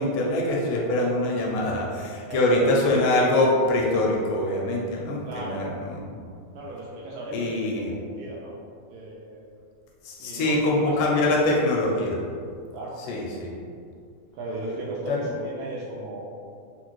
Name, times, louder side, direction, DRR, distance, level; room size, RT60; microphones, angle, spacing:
voice 1, 0.0-6.2 7.3-7.9 10.1-12.2 13.1-13.5 15.1-15.2, left 1 dB, 80° left, -2 dB, 2.1 m, -24 dB
voice 2, 2.3-2.6 5.3-5.7 6.5-8.5 8.9-9.4 10.2-11.3 12.7-13.0 13.6-13.7 14.3-16.2, right 1 dB, 80° right, -4 dB, 1.8 m, -36 dB
5.1 x 2.3 x 4.5 m, 2.3 s
omnidirectional pair, 3.8 m